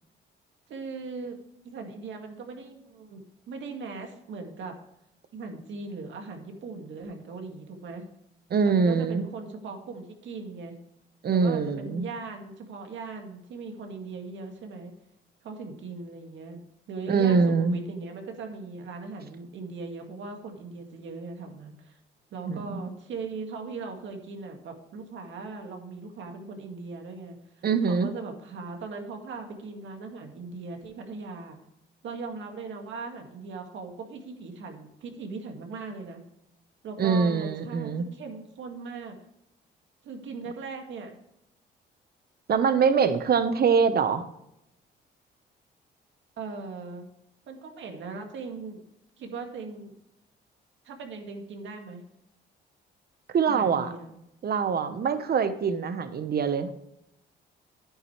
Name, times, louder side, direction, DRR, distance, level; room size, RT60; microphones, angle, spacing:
voice 1, 0.7-1.4 1.6-4.7 5.3-8.0 8.6-10.8 11.3-14.9 15.4-16.6 16.9-22.0 22.3-27.4 27.8-31.6 32.0-36.2 36.8-39.2 40.0-41.2 46.4-47.1 47.5-48.8 49.2-49.9 50.8-52.0 53.5-54.2, right 4 dB, 70° right, 3 dB, 2.1 m, -39 dB
voice 2, 8.5-9.2 11.2-12.0 17.1-17.7 22.5-22.9 27.6-28.1 37.0-38.0 42.5-44.2 53.3-53.9 54.4-56.7, right 5 dB, 50° right, 11 dB, 1.1 m, -24 dB
9.7 x 9.7 x 3.3 m, 0.82 s
cardioid pair, 90°, 20 cm